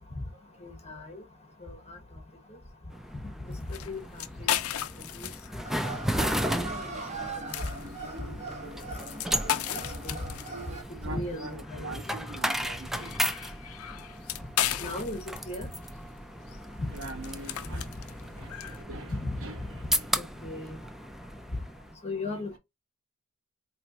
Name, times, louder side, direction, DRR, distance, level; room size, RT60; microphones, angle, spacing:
voice 1, 0.6-1.2 1.6-2.0 3.7-4.0 4.4-4.5 5.2-5.3 6.5-6.8 9.4-10.2 11.0-11.9 14.8-15.2 15.5-15.7 16.8-16.9 19.1-19.4 20.1-20.7 22.0-22.6, left 2 dB, 30° left, 1.3 m, -36 dB
sound 1, 2.9-21.9, equal, ahead, 0.3 m, -35 dB
sound 2, 3.5-18.8, left 11 dB, 75° left, 0.5 m, -37 dB
sound 3, 5.6-10.8, right 3 dB, 30° right, 1.1 m, -40 dB
voice 2, 11.0-13.1 16.5-16.6 16.9-20.2, right 2 dB, 65° right, 1.1 m, -43 dB
4.3 x 3.0 x 2.7 m
head